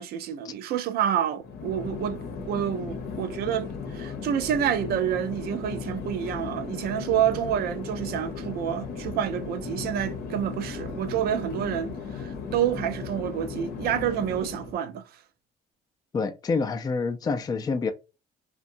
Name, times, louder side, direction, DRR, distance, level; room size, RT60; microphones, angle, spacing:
voice 1, 0.0-15.0, right 10 dB, 65° right, 0.5 m, -28 dB
Chatter / Fixed-wing aircraft airplane, 1.4-14.8, left 5 dB, 70° left, 0.7 m, -36 dB
voice 2, 16.1-17.9, left 4 dB, 25° left, 0.4 m, -27 dB
2.7 x 2.2 x 2.5 m
cardioid pair, 110°, 17 cm